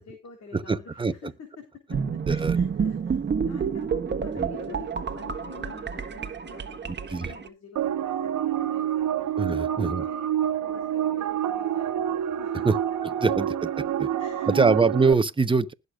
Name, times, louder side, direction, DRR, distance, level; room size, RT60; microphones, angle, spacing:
voice 1, 0.0-3.2 3.5-12.8 14.2-14.7, left 5 dB, 55° left, 3.7 m, -47 dB
voice 2, 0.5-1.1 2.3-2.6 4.3-4.5 7.1-7.3 9.4-10.0 12.6-12.8 13.2-13.5 14.0-14.1 14.5-15.7, right 4 dB, 15° right, 0.9 m, -23 dB
sound 1, 1.9-7.5, right 6 dB, 35° right, 1.3 m, -29 dB
sound 2, 7.8-15.1, right 10 dB, 80° right, 1.3 m, -27 dB
20.0 x 6.7 x 2.4 m
cardioid pair, 90°, 30 cm